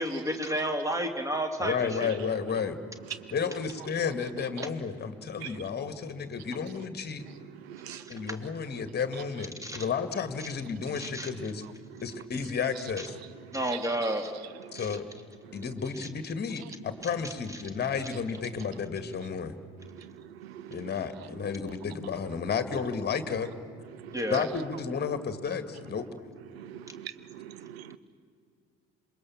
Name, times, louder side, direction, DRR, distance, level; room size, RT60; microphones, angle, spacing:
voice 1, 0.0-2.1 7.9-8.1 9.6-9.8 11.0-11.3 13.5-14.3 14.7-14.9 17.5-17.6 24.1-24.4, right 1 dB, 10° right, 6 dB, 2.8 m, -31 dB
voice 2, 1.6-2.8 3.3-7.2 8.1-11.6 12.0-13.2 14.7-15.1 15.5-19.5 20.7-23.5 24.3-26.1, left 6 dB, 30° left, 11 dB, 1.9 m, -32 dB
voice 3, 7.7-8.0 20.4-20.8 26.5-28.0, right 11 dB, 70° right, 15 dB, 0.9 m, -43 dB
27.0 x 23.5 x 7.4 m, 2.4 s
figure-of-eight pair, 50°, 32 cm